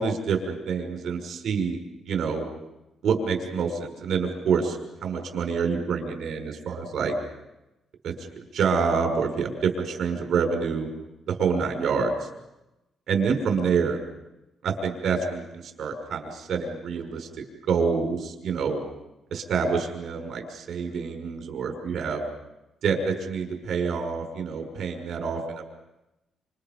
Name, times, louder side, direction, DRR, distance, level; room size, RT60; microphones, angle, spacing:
voice 1, 0.0-1.8 2.1-2.5 3.0-7.1 8.0-8.1 8.5-10.9 11.3-12.1 13.1-14.0 14.6-17.3 17.7-18.8 19.3-22.2 22.8-25.4, right 5 dB, 50° right, 3 dB, 5.7 m, -27 dB
29.0 x 28.0 x 5.4 m, 0.95 s
cardioid pair, 180°, 0 cm